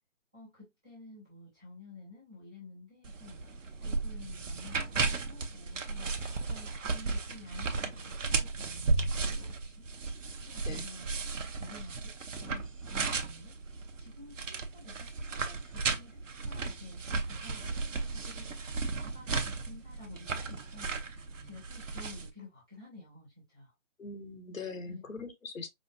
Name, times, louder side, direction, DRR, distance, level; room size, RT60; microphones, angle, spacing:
voice 1, 0.3-3.4 3.8-6.1 6.4-9.9 10.4-11.1 11.4-13.6 14.0-17.0 17.3-18.5 18.9-20.9 21.4-23.7 24.8-25.0, left 3 dB, 5° right, 0.6 m, -52 dB
sound 1, 3.0-22.3, right 4 dB, 75° right, 0.9 m, -35 dB
voice 2, 24.0-25.7, left 4 dB, 85° left, 1.4 m, -41 dB
4.9 x 2.6 x 2.5 m
hypercardioid pair, 160°, 38 cm